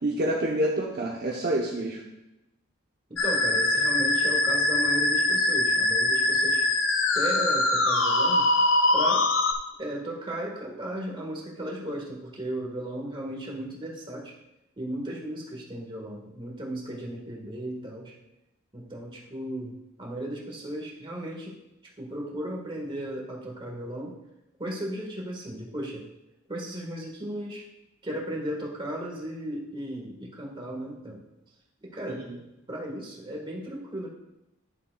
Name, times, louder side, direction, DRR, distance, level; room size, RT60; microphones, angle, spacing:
voice 1, 0.0-2.0 32.1-32.2, right 1 dB, 50° right, -2 dB, 0.8 m, -27 dB
Musical instrument, 3.2-9.5, left 2 dB, 65° left, 0.8 m, -23 dB
voice 2, 3.2-6.7 7.1-8.5 8.9-9.3 9.8-14.3 14.8-18.1 18.7-21.6 22.0-24.2 24.6-26.1 26.5-27.7 28.0-31.2 31.8-32.3 32.7-34.1, right 1 dB, 25° right, -1 dB, 1.6 m, -35 dB
11.0 x 7.1 x 2.3 m, 0.92 s
head